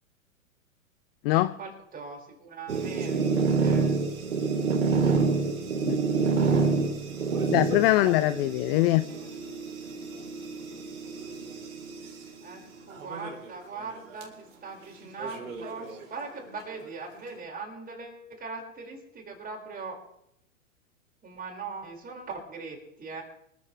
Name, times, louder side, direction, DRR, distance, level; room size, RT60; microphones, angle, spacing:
voice 1, 1.3-3.2 3.6-3.9 9.0-9.3 12.4-20.0 21.2-23.2, right 4 dB, 20° right, 1 dB, 5.6 m, -40 dB
sound 1, 2.7-12.1 12.9-13.4 13.8-13.9 14.2-14.3 15.2-16.3, right 4 dB, 85° right, 4.2 m, -28 dB
voice 2, 7.5-9.1, left 17 dB, 45° left, 15 dB, 0.7 m, -22 dB
25.5 x 14.5 x 3.4 m, 0.77 s
hypercardioid pair, 110°, 41 cm